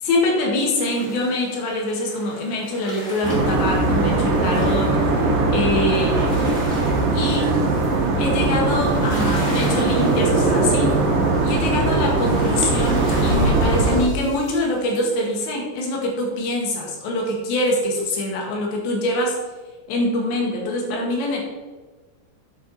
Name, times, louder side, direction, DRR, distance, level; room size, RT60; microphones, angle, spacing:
voice 1, 0.0-5.2 5.5-6.3 7.1-7.5 8.2-11.0 11.4-19.4 19.9-21.4, left 1 dB, 75° left, -1 dB, 4.1 m, -24 dB
sound 1, 0.7-15.6, left 1 dB, 40° left, 3.2 m, -39 dB
sound 2, 3.2-14.0, right 2 dB, 60° right, 2.8 m, -20 dB
voice 2, 5.9-6.4 7.2-8.4, right 7 dB, 80° right, 7 dB, 2.8 m, -38 dB
9.9 x 8.2 x 4.2 m, 1.3 s
omnidirectional pair, 5.1 m